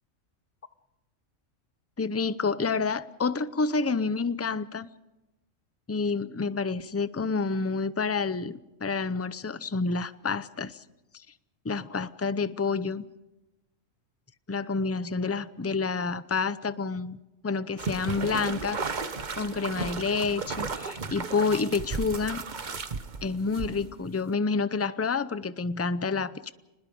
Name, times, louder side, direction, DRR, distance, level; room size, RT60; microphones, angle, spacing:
voice 1, 2.0-4.9 5.9-10.8 11.6-13.0 14.5-17.2 17.4-18.8 19.4-22.4 23.2-26.5, left 4 dB, 20° left, 15 dB, 0.4 m, -29 dB
sound 1, 17.8-24.1, right 4 dB, 40° right, 1.1 m, -34 dB
29.0 x 20.5 x 5.3 m, 1.0 s
omnidirectional pair, 1.3 m